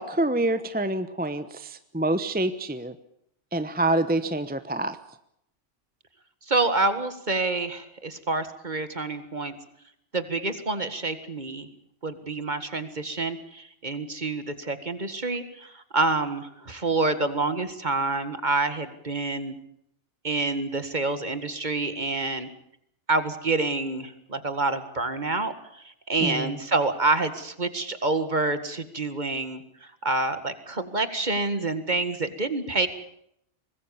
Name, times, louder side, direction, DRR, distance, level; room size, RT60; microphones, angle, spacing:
voice 1, 0.0-2.9 3.5-5.0 26.2-26.6, right 1 dB, 10° right, 11 dB, 0.9 m, -27 dB
voice 2, 6.5-9.6 10.1-11.7 12.0-19.5 20.2-22.5 23.1-25.5 26.1-29.6 30.0-32.9, right 3 dB, 40° right, 11 dB, 2.0 m, -27 dB
24.5 x 20.5 x 7.1 m, 0.75 s
omnidirectional pair, 1.2 m